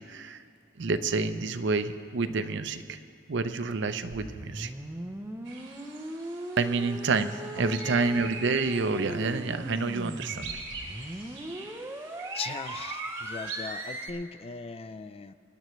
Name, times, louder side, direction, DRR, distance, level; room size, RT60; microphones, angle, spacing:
voice 1, 0.1-0.4 0.8-3.0 3.3-4.7 6.6-10.5, right 4 dB, 65° right, 10 dB, 0.6 m, -28 dB
sound 1, 4.1-14.1, right 1 dB, 15° right, 0.7 m, -39 dB
sound 2, 5.5-14.0, right 4 dB, 80° right, 2.3 m, -43 dB
voice 2, 7.6-8.1 12.3-15.3, left 5 dB, 30° left, 11 dB, 0.3 m, -39 dB
25.0 x 10.5 x 3.1 m, 2.4 s
head